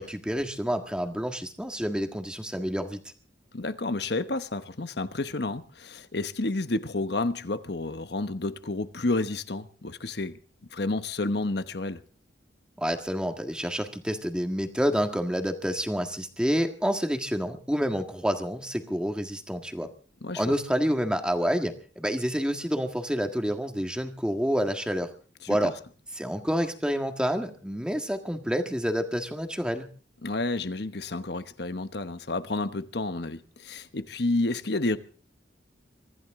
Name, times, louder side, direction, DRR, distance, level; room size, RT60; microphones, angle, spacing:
voice 1, 0.0-3.0 12.8-19.9 20.4-25.1 25.5-25.7 26.2-29.9, equal, 5° right, 1.6 m, -28 dB
voice 2, 3.5-10.4 10.7-12.0 20.2-20.5 25.4-25.7 30.2-35.0, left 2 dB, 60° left, 1.1 m, -30 dB
24.5 x 14.0 x 3.7 m
head